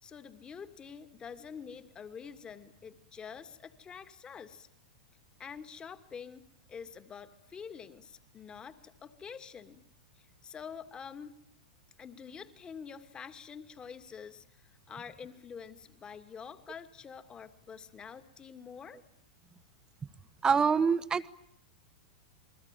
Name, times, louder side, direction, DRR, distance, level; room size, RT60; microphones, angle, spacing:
voice 1, 0.0-4.7 5.4-9.8 10.2-11.4 12.0-19.0, left 6 dB, 20° left, 10 dB, 2.3 m, -47 dB
voice 2, 20.4-21.3, right 6 dB, 20° right, 15 dB, 1.3 m, -25 dB
29.0 x 22.5 x 9.2 m, 0.73 s
figure-of-eight pair, 95°, 4 cm